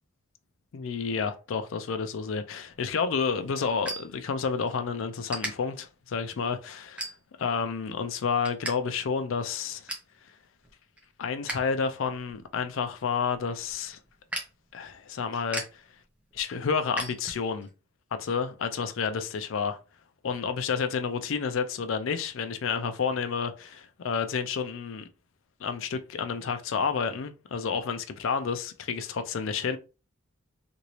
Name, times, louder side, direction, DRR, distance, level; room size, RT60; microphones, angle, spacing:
voice 1, 0.7-7.0 7.4-9.9 11.2-14.0 14.7-15.6 16.3-17.7 18.1-19.8 20.2-25.1 25.6-29.8, left 5 dB, 65° left, 0.4 m, -30 dB
sound 1, 2.7-4.8 5.3-5.5 6.1-6.3 7.0-7.5 7.9-8.7 9.0-9.1 9.5-10.1 10.6-11.7 12.0-17.7, right 1 dB, 5° right, 0.7 m, -39 dB
2.9 x 2.6 x 3.0 m
head